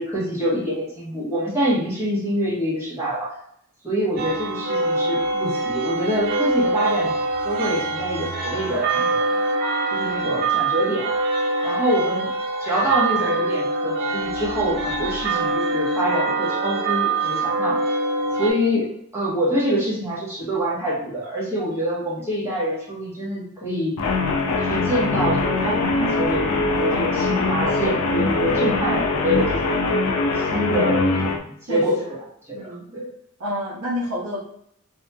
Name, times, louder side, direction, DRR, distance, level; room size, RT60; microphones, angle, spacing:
voice 1, 0.0-3.4 3.8-7.1 7.4-9.3 9.9-11.1 11.6-12.3 12.6-17.8 18.4-18.9 19.1-24.0 24.6-29.8 30.3-32.2 32.5-33.1, equal, 10° right, -9 dB, 1.1 m, -25 dB
sound 1, 4.2-18.5, right 2 dB, 45° right, 0.5 m, -24 dB
Guitar, 24.0-31.4, left 3 dB, 75° left, 0.4 m, -22 dB
voice 2, 31.7-32.1 32.5-32.9 33.4-34.4, equal, 85° right, -3 dB, 0.8 m, -29 dB
2.8 x 2.6 x 2.2 m, 0.71 s
head